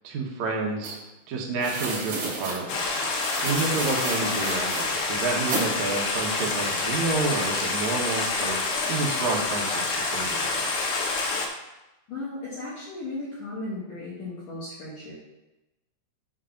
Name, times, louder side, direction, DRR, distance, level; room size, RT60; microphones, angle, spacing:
voice 1, 0.0-1.0 1.3-3.0 3.4-8.6 8.9-9.8 10.1-10.7, right 3 dB, 85° right, -2 dB, 1.6 m, -29 dB
sound 1, 0.8-0.9 1.6-2.6 3.1-4.9 5.5-5.7, right 3 dB, 45° right, 3.0 m, -32 dB
Stream, 2.7-11.5, left 3 dB, 90° left, 1.9 m, -27 dB
voice 2, 12.1-15.1, left 2 dB, 60° left, -7 dB, 2.5 m, -36 dB
8.1 x 3.8 x 5.7 m, 0.97 s
omnidirectional pair, 5.2 m